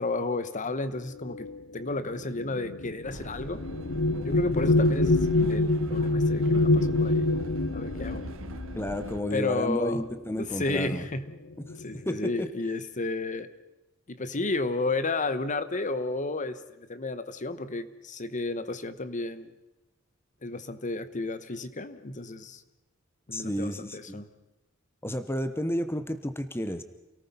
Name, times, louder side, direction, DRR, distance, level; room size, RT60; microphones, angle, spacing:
voice 1, 0.0-1.5 1.7-3.6 4.2-7.3 7.7-8.2 9.3-10.0 10.4-11.2 11.8-13.5 14.1-16.6 16.9-19.5 20.4-22.6 23.3-24.3, left 2 dB, 40° left, 12 dB, 1.0 m, -32 dB
sound 1, 1.2-10.1 11.0-11.2 11.5-12.1, left 2 dB, 65° left, 0.9 m, -26 dB
Train, 3.0-9.2, right 1 dB, 70° right, 1.5 m, -41 dB
voice 2, 8.7-11.0 12.1-12.5 23.3-24.2 25.0-26.8, equal, 10° left, 11 dB, 0.9 m, -31 dB
28.5 x 18.5 x 5.5 m, 0.99 s
head